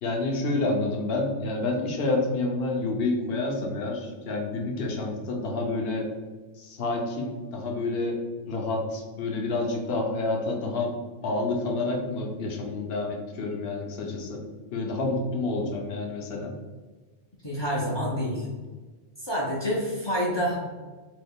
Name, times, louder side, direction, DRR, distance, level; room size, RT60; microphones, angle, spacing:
voice 1, 0.0-6.1 6.6-10.9 11.2-14.4 14.7-16.6, left 2 dB, 65° left, 1 dB, 0.8 m, -29 dB
voice 2, 17.4-18.5 19.2-20.7, equal, 40° left, -5 dB, 0.4 m, -27 dB
2.8 x 2.3 x 3.5 m, 1.3 s
omnidirectional pair, 1.2 m